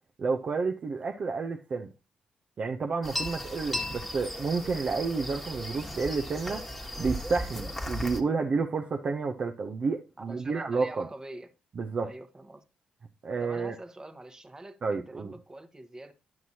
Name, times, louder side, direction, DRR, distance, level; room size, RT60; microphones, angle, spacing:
voice 1, 0.2-1.9 2.6-6.7 7.0-11.1 11.8-12.1 13.2-13.7 14.8-15.3, right 4 dB, 50° right, 0.6 m, -30 dB
sound 1, 3.0-8.2, left 1 dB, 5° left, 1.4 m, -36 dB
voice 2, 10.2-11.5 12.0-12.6 13.4-16.1, right 2 dB, 25° right, 1.1 m, -45 dB
9.6 x 5.9 x 2.8 m
supercardioid pair, 50°, 3 cm